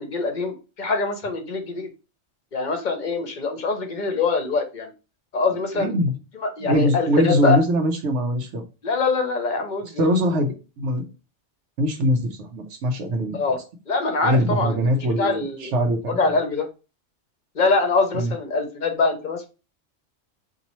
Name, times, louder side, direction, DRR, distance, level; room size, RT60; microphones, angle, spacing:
voice 1, 0.0-1.9 2.5-4.9 5.3-5.9 6.6-7.6 8.8-10.1 13.3-13.6 13.9-15.7 16.1-16.7 17.6-19.5, left 4 dB, 45° left, 6 dB, 0.8 m, -24 dB
voice 2, 5.7-6.2 6.6-8.6 10.0-11.1 11.8-13.4 14.2-16.3 18.1-18.3, equal, 80° right, 5 dB, 1.0 m, -22 dB
4.1 x 2.6 x 2.9 m, 0.31 s
omnidirectional pair, 1.2 m